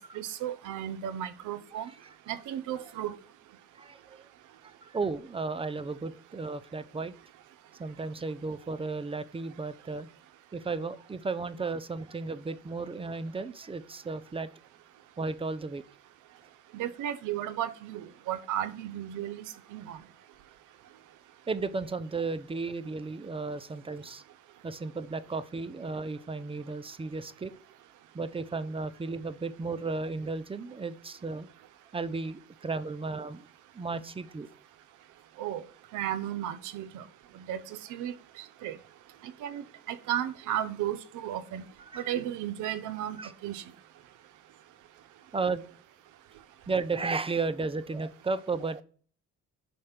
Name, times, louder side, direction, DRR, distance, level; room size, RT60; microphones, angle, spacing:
voice 1, 0.1-1.9 2.3-3.1 16.7-19.4 19.7-20.0 35.4-35.6 35.9-37.0 37.4-38.8 39.4-41.7 42.0-43.2 43.4-43.6, right 11 dB, 85° right, 0.7 m, -34 dB
voice 2, 3.8-4.2 4.8-7.1 7.8-10.1 10.5-14.5 15.2-15.8 21.5-24.2 24.6-27.5 28.1-31.5 31.9-33.5 33.7-34.5 41.9-42.0 43.2-43.3 45.3-45.6 46.7-48.8, right 4 dB, 20° right, 0.6 m, -34 dB
5.2 x 4.3 x 5.7 m
cardioid pair, 90°, 30 cm